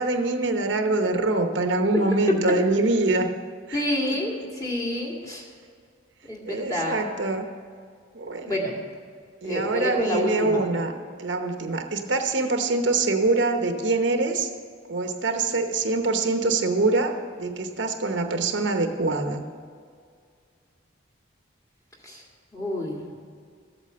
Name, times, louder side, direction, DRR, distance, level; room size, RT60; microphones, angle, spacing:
voice 1, 0.0-3.3 3.7-4.2 6.4-7.5 8.1-8.6 9.4-10.9 11.2-14.5 14.9-19.4, right 3 dB, 65° right, 6 dB, 0.9 m, -24 dB
voice 2, 3.7-5.4 6.3-7.0 8.5-8.8 9.4-10.6 22.0-22.2 22.5-23.0, left 1 dB, 15° left, -2 dB, 2.1 m, -28 dB
14.0 x 8.5 x 6.7 m, 2.1 s
head